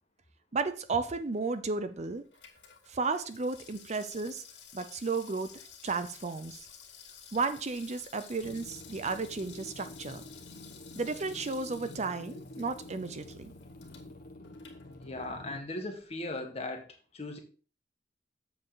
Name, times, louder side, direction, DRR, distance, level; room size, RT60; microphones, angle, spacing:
voice 1, 0.5-2.2 2.9-4.4 4.7-6.6 7.3-10.2 10.9-13.5, right 4 dB, 40° right, 11 dB, 0.6 m, -33 dB
Water tap faucet / Sink (filling or washing), 1.2-15.5 15.8-15.9, left 7 dB, 80° left, 2.3 m, -54 dB
sound 1, 8.4-15.6, left 1 dB, 55° left, 1.3 m, -48 dB
voice 2, 15.0-16.9 17.1-17.4, left 2 dB, 35° left, 3 dB, 1.7 m, -38 dB
7.7 x 6.9 x 3.9 m, 0.39 s
head